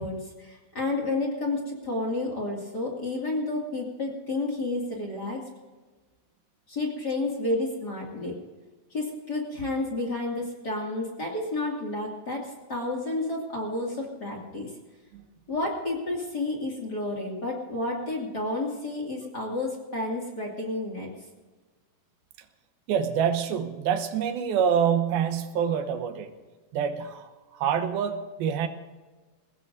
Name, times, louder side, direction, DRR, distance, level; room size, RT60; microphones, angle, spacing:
voice 1, 0.0-5.5 6.7-8.4 8.9-14.7 15.5-21.1, left 2 dB, 30° left, -2 dB, 2.2 m, -31 dB
voice 2, 22.9-26.3 26.7-28.7, right 8 dB, 85° right, 8 dB, 2.8 m, -26 dB
22.0 x 19.0 x 2.6 m, 1.3 s
omnidirectional pair, 4.3 m